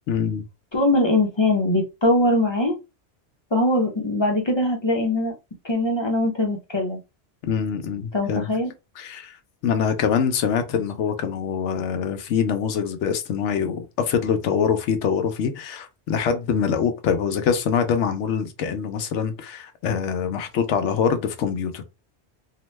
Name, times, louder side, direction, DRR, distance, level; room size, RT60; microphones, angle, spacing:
voice 1, 0.1-0.5 7.4-8.5 9.0-9.4 9.6-21.8, left 7 dB, 85° left, 0.9 m, -24 dB
voice 2, 0.7-2.8 3.5-5.3 5.6-7.0 8.1-8.7, left 1 dB, 30° left, 0.6 m, -21 dB
2.8 x 2.1 x 3.1 m
omnidirectional pair, 1.2 m